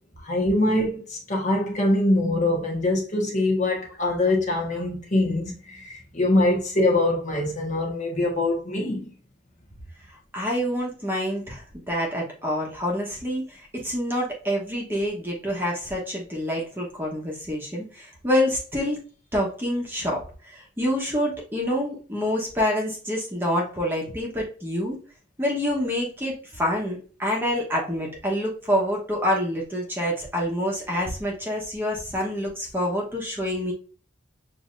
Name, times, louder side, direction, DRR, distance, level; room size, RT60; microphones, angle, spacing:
voice 1, 0.2-9.1, left 1 dB, 35° left, 1.2 m, -23 dB
voice 2, 10.3-19.0 19.3-25.0 25.4-33.7, equal, 10° right, 1.0 m, -27 dB
7.0 x 2.8 x 2.5 m
head